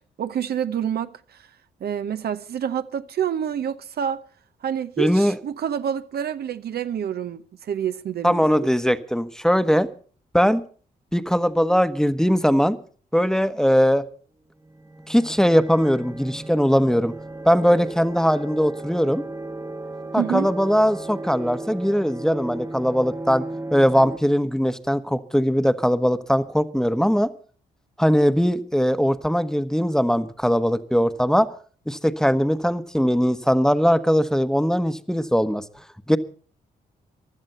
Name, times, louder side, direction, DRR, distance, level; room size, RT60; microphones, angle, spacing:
voice 1, 0.2-1.5 1.8-4.2 4.6-8.7 20.2-20.5, right 9 dB, 65° right, 0.8 m, -28 dB
voice 2, 5.0-5.4 8.2-9.9 10.3-10.6 11.1-12.8 13.1-14.0 15.1-17.1 17.4-19.2 20.1-23.4 23.7-27.3 28.0-31.5 31.9-35.6 36.1-36.2, equal, 5° left, 1.1 m, -20 dB
sound 1, 14.6-24.2, right 2 dB, 15° right, 1.2 m, -35 dB
16.0 x 12.0 x 5.6 m
supercardioid pair, 55°, 18 cm